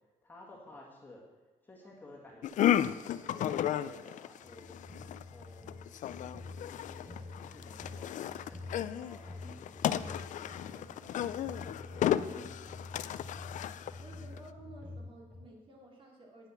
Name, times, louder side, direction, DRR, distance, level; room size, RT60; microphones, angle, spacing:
voice 1, 0.2-1.2 1.6-4.7 5.2-6.0 6.7-13.1, left 2 dB, 15° left, -3 dB, 2.0 m, -55 dB
sound 1, 2.4-14.4, left 11 dB, 65° left, 0.4 m, -33 dB
sound 2, 4.4-15.4, left 2 dB, ahead, 4.0 m, -48 dB
voice 2, 14.0-16.5, right 1 dB, 40° right, -1 dB, 3.0 m, -53 dB
9.9 x 8.0 x 6.9 m, 1.2 s
wide cardioid pair, 160°, 14 cm